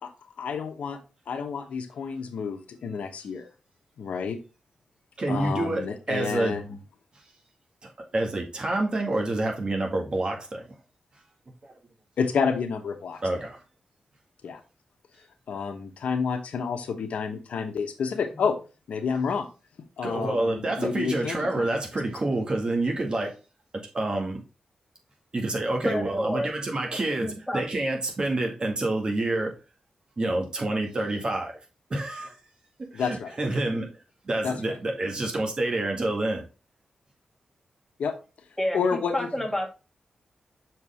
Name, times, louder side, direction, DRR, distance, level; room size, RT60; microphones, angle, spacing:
voice 1, 0.4-1.0 1.3-3.5 4.0-4.4 5.3-6.8 12.2-13.2 14.4-14.6 15.5-18.6 18.9-19.5 20.0-21.7 32.9-33.3 34.4-34.7 38.0-38.1 38.7-39.3, left 6 dB, 90° left, 1.1 m, -29 dB
voice 2, 5.2-6.6 7.1-7.2 7.8-10.8 11.6-11.7 13.2-13.6 20.0-23.4 23.7-24.4 25.3-29.5 30.2-31.6 31.9-32.4 32.8-36.5, right 2 dB, 45° right, 2.0 m, -28 dB
voice 3, 25.8-26.5 26.9-27.6 38.6-39.7, left 1 dB, 5° left, 1.7 m, -30 dB
6.7 x 4.6 x 3.4 m
cardioid pair, 80°, 2 cm